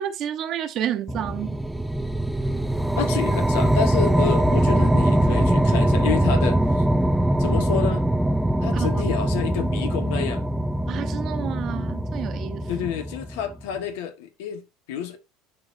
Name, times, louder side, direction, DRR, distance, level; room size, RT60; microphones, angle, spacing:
voice 1, 0.0-1.6 8.7-8.9 10.9-12.7, right 10 dB, 45° right, 1.1 m, -30 dB
sound 1, 1.1-13.6, right 1 dB, 5° right, 0.4 m, -22 dB
voice 2, 3.0-6.8 7.4-8.0 8.6-10.5 12.7-15.2, left 8 dB, 80° left, 1.5 m, -29 dB
11.0 x 4.0 x 2.7 m
supercardioid pair, 135°, 0 cm